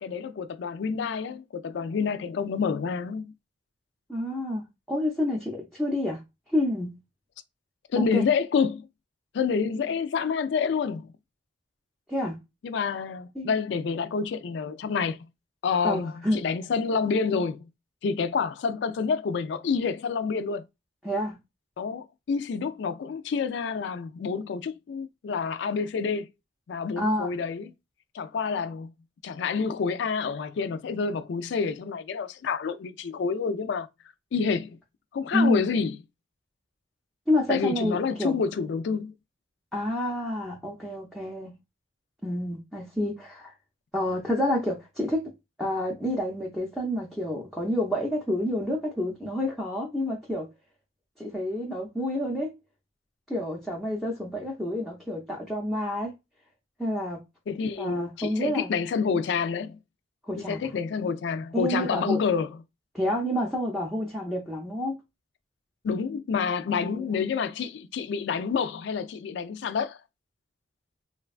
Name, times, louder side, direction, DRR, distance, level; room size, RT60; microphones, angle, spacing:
voice 1, 0.0-3.3 7.9-8.9 9.3-11.1 12.6-15.3 15.6-17.7 18.0-20.6 21.8-26.3 26.7-27.7 28.1-28.9 29.2-33.9 34.3-34.8 35.1-36.0 37.5-39.1 57.5-59.8 60.4-62.5 65.8-70.0, left 5 dB, 60° left, 0.3 m, -28 dB
voice 2, 4.1-6.2 6.5-7.0 8.0-8.2 12.1-12.4 13.4-13.5 15.8-16.4 21.0-21.3 27.0-27.3 35.3-35.7 37.3-38.4 39.7-41.6 42.2-43.5 43.9-45.3 45.6-50.5 51.2-52.5 53.3-56.1 56.8-57.2 57.8-58.7 60.3-60.7 61.5-62.2 62.9-65.0, left 1 dB, ahead, 0.5 m, -28 dB
3.2 x 2.2 x 2.3 m
head